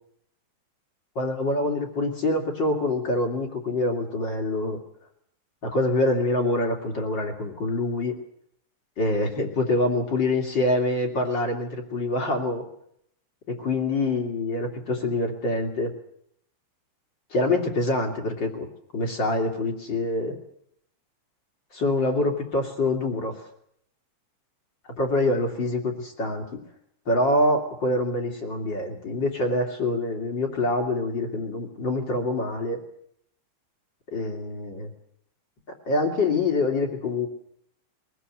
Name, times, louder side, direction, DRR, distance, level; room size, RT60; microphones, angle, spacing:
voice 1, 1.1-4.8 5.6-8.2 9.0-12.7 13.5-15.9 17.3-18.7 18.9-20.4 21.7-23.5 25.0-26.6 27.1-32.8 34.1-34.9 35.9-37.3, left 2 dB, 30° left, 2 dB, 2.6 m, -25 dB
23.0 x 18.5 x 7.9 m, 0.70 s
omnidirectional pair, 5.3 m